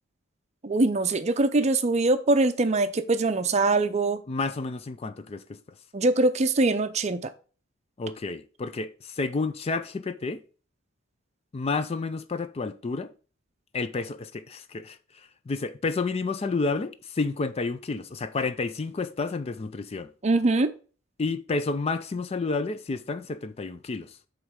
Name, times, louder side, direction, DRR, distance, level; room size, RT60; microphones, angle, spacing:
voice 1, 0.6-4.2 5.9-7.3 20.2-20.7, right 2 dB, 30° right, 0.5 m, -23 dB
voice 2, 4.3-5.6 8.0-10.4 11.5-13.1 13.7-20.1 21.2-24.2, left 3 dB, 30° left, 0.4 m, -30 dB
7.9 x 3.2 x 5.1 m
head